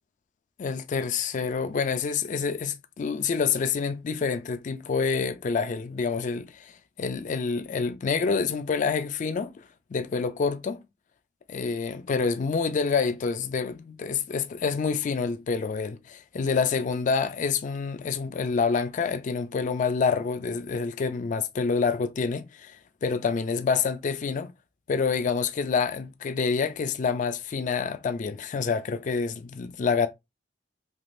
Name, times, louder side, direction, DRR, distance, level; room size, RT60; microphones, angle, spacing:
voice 1, 0.6-6.7 7.0-9.5 9.9-10.8 11.5-24.5 24.9-30.1, left 5 dB, 40° left, 0.3 m, -27 dB
3.5 x 2.8 x 2.5 m
head